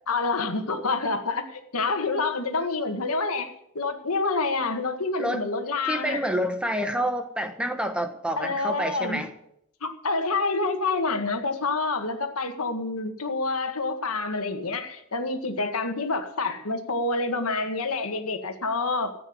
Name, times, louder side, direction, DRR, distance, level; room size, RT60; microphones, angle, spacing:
voice 1, 0.1-6.2 8.4-9.2 9.8-19.1, left 3 dB, 80° left, 1.7 m, -27 dB
voice 2, 5.9-9.3, equal, 5° right, 1.2 m, -28 dB
14.5 x 9.0 x 7.9 m
head